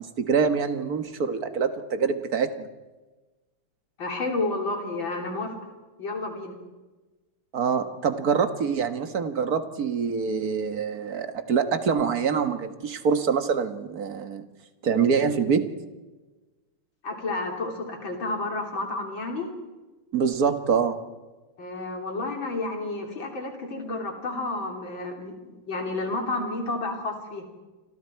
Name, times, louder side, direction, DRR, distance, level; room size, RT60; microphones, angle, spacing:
voice 1, 0.0-2.7 7.5-14.5 14.8-15.7 20.1-21.0, right 6 dB, 45° right, 8 dB, 1.8 m, -25 dB
voice 2, 4.0-5.6 6.0-6.6 17.0-19.5 21.6-27.4, left 2 dB, 60° left, 2 dB, 4.2 m, -31 dB
29.5 x 25.5 x 4.6 m, 1.2 s
omnidirectional pair, 2.4 m